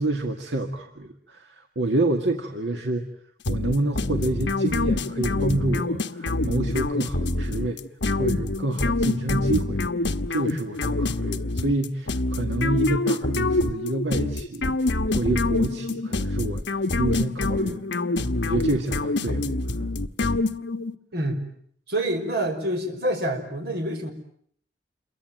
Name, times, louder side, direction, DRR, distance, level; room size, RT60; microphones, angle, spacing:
voice 1, 0.0-3.0 3.5-7.8 8.1-9.8 10.3-16.6 17.0-17.8 18.4-19.5 19.8-19.9, right 2 dB, 80° right, 4 dB, 2.0 m, -28 dB
sound 1, 3.5-20.9, left 2 dB, 75° left, 1.2 m, -26 dB
voice 2, 21.1-21.5 21.9-24.1, right 1 dB, 60° right, 5 dB, 5.7 m, -27 dB
28.0 x 23.0 x 9.1 m, 0.64 s
head